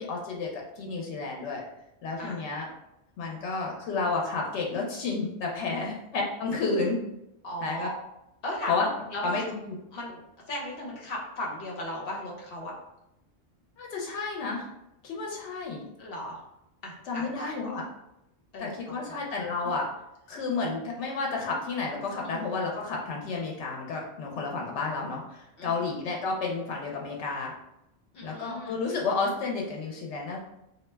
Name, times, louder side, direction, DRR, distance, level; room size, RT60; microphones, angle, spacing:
voice 1, 0.0-1.6 2.0-2.7 3.2-7.0 7.6-7.9 8.7-8.9 9.2-9.8 13.8-14.7 15.0-15.8 17.1-17.8 18.6-19.9 20.3-27.5 28.2-30.4, left 4 dB, 90° left, -1 dB, 0.9 m, -31 dB
voice 2, 7.4-7.9 8.4-8.7 9.1-9.4 9.9-10.2 10.5-12.7 16.0-16.4 16.8-17.8 18.5-19.2 19.6-19.7 22.2-22.4 25.6-25.9 28.1-28.8, left 1 dB, 60° left, -2 dB, 0.9 m, -37 dB
2.4 x 2.1 x 3.2 m, 0.87 s
omnidirectional pair, 1.1 m